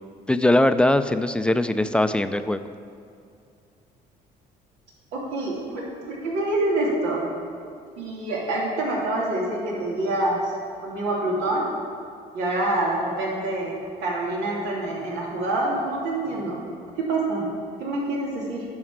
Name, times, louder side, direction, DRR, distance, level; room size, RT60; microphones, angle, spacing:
voice 1, 0.3-2.6, left 1 dB, 5° left, 10 dB, 0.4 m, -21 dB
voice 2, 5.1-7.3 8.0-10.6 10.8-11.7 12.3-13.7 14.0-16.6 17.0-17.5 17.8-18.6, right 2 dB, 90° right, -4 dB, 2.9 m, -26 dB
11.0 x 6.4 x 7.3 m, 2.5 s
cardioid pair, 110°, 17 cm